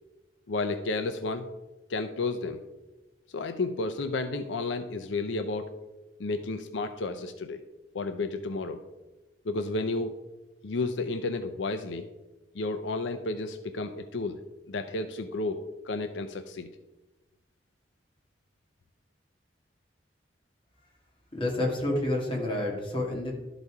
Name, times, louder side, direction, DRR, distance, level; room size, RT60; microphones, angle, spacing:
voice 1, 0.5-1.5 1.9-2.6 3.3-5.7 6.2-7.6 7.9-8.8 9.4-10.1 10.6-12.1 12.5-14.4 14.7-16.7, left 3 dB, 85° left, 8 dB, 0.5 m, -32 dB
voice 2, 21.3-23.3, left 1 dB, 30° left, -2 dB, 2.0 m, -29 dB
12.0 x 4.1 x 4.7 m, 1.1 s
head